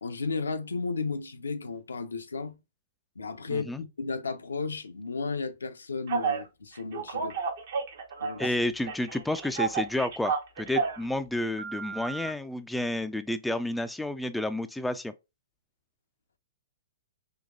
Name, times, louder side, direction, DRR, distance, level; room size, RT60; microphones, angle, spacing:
voice 1, 0.0-2.6 3.2-7.4 8.2-8.4, left 4 dB, 85° left, 0.5 m, -34 dB
voice 2, 3.5-3.8 8.4-15.1, left 1 dB, 5° left, 0.3 m, -30 dB
Telephone, 6.1-6.4 6.9-8.6 8.9-11.0 11.6-12.3, right 6 dB, 60° right, 1.0 m, -31 dB
3.9 x 2.9 x 2.2 m
hypercardioid pair, 120°, 0 cm